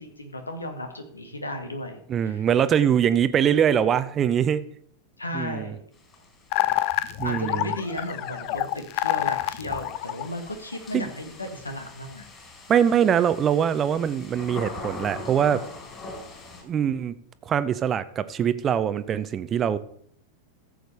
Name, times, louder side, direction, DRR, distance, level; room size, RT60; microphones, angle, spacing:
voice 1, 0.0-2.4 5.2-5.8 7.2-12.3, left 1 dB, 80° left, 1.6 m, -35 dB
voice 2, 2.1-4.6 5.3-5.7 7.2-7.7 10.9-11.0 12.7-15.6 16.6-17.2 17.5-19.8, right 8 dB, 25° right, 0.6 m, -23 dB
sound 1, 5.9-16.6, left 3 dB, 25° left, 4.3 m, -43 dB
sound 2, 6.5-10.7, left 15 dB, 45° left, 0.5 m, -27 dB
14.5 x 7.9 x 3.3 m
figure-of-eight pair, 90°, 0 cm